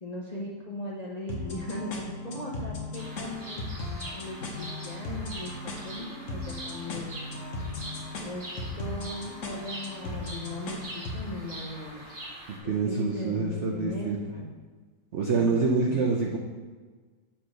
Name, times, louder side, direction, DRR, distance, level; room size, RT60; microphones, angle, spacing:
voice 1, 0.0-3.6 4.1-5.5 5.8-7.2 8.2-8.4 8.8-10.8 11.1-12.0 12.6-14.5 15.2-16.0, left 1 dB, 80° left, -3 dB, 0.3 m, -38 dB
sound 1, 1.3-11.3, left 2 dB, 50° left, 1.1 m, -37 dB
Bird vocalization bird call bird song, 2.9-12.6, right 1 dB, 30° right, 1.4 m, -43 dB
voice 2, 12.5-14.2 15.1-16.4, right 4 dB, 85° right, 1 dB, 0.6 m, -26 dB
7.3 x 3.7 x 6.2 m, 1.5 s
omnidirectional pair, 2.0 m